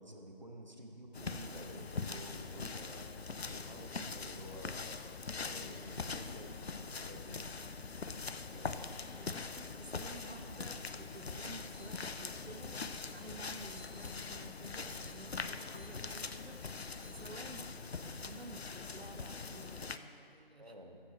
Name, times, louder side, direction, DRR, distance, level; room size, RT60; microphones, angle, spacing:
voice 1, 0.0-3.1 3.5-5.0 5.3-6.6 6.8-7.4 8.5-8.9 9.4-9.5 9.9-10.8 11.3-11.6 20.6-21.0, right 1 dB, 45° right, 2 dB, 1.1 m, -51 dB
sound 1, 1.1-20.0, left 4 dB, 85° left, 0.6 m, -43 dB
voice 2, 5.3-5.8 8.2-8.8 9.1-20.7, right 2 dB, 85° right, 6 dB, 0.8 m, -53 dB
sound 2, 10.6-10.7 10.9-11.0 11.7-12.1 12.7-13.1 13.7-15.1 15.7-16.1 16.7-17.1, left 1 dB, 40° left, 1.1 m, -58 dB
14.5 x 6.0 x 4.3 m, 2.5 s
figure-of-eight pair, 180°, 30 cm